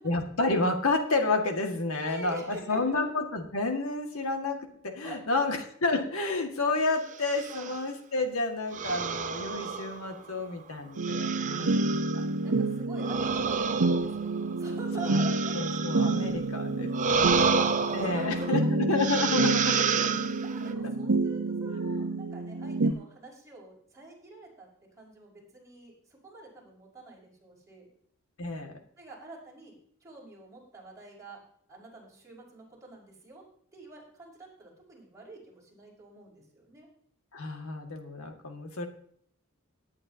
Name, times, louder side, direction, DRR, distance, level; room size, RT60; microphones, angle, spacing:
voice 1, 0.0-12.0 15.0-15.2 15.5-17.2 17.9-19.8 22.1-22.2 28.4-28.7 37.3-38.9, left 3 dB, 80° left, 4 dB, 2.0 m, -30 dB
voice 2, 1.9-3.0 5.0-5.5 7.5-7.8 12.4-15.6 16.0-18.7 20.4-24.7 25.0-27.9 29.0-29.7 30.0-31.4 31.7-33.4 33.7-36.9, right 2 dB, 15° right, -6 dB, 5.5 m, -46 dB
sound 1, 7.1-7.8 8.7-10.4 11.0-12.3 13.0-16.3 16.9-18.6 19.0-20.7, right 5 dB, 35° right, 0.7 m, -30 dB
sound 2, 11.0-22.9, right 2 dB, 80° right, 0.9 m, -29 dB
18.0 x 9.7 x 2.8 m, 0.63 s
head